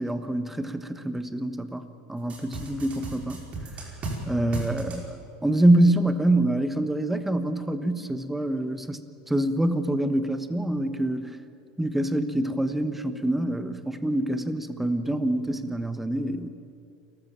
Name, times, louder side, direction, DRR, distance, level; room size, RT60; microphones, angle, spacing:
voice 1, 0.0-3.4 4.3-9.0 9.3-11.4 11.8-16.5, right 1 dB, 5° right, 10 dB, 1.2 m, -25 dB
sound 1, 2.3-4.2 4.5-5.0, right 3 dB, 30° right, 5.1 m, -34 dB
29.0 x 14.0 x 7.5 m, 2.6 s
supercardioid pair, 125°, 4 cm